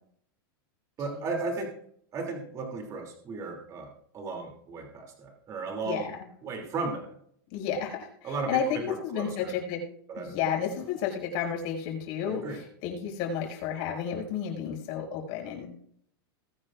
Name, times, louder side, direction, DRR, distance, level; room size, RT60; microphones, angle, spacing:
voice 1, 1.0-1.7 2.1-6.1 6.4-7.1 8.2-8.6 8.9-9.5 10.1-10.4 12.2-12.6, right 3 dB, 25° right, 3 dB, 3.1 m, -35 dB
voice 2, 7.5-9.8 10.2-15.7, left 7 dB, 45° left, 0 dB, 6.3 m, -32 dB
21.0 x 10.5 x 2.6 m, 0.64 s
supercardioid pair, 155°, 12 cm